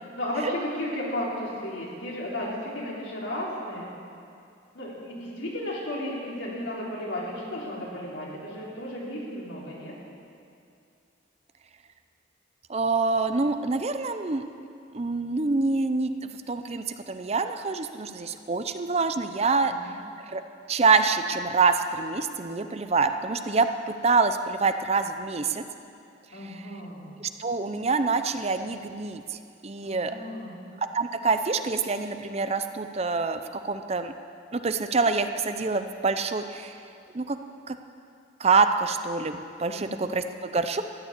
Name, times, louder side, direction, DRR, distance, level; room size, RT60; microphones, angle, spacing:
voice 1, 0.0-3.9 4.7-9.9 19.7-20.0 26.3-27.1 29.8-30.6 39.7-40.1, left 1 dB, 80° left, -4 dB, 3.7 m, -34 dB
voice 2, 12.7-14.4 14.9-19.7 20.3-20.4 20.7-25.6 26.4-26.7 27.2-30.2 30.8-34.1 34.5-36.7 37.1-37.4 37.7-37.8 38.4-40.8, right 4 dB, 35° right, 9 dB, 0.6 m, -26 dB
13.5 x 9.9 x 8.3 m, 2.5 s
head